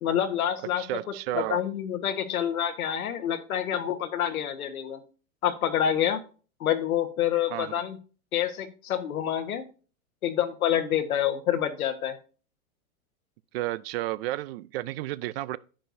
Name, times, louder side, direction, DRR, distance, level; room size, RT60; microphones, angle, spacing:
voice 1, 0.0-0.8 1.3-5.0 5.4-6.2 6.6-8.0 8.3-9.6 10.2-12.2, left 10 dB, 80° left, 1.3 m, -27 dB
voice 2, 0.8-1.6 7.5-7.7 13.5-15.6, right 16 dB, 45° right, 0.4 m, -32 dB
10.0 x 7.6 x 2.6 m
hypercardioid pair, 120°, 42 cm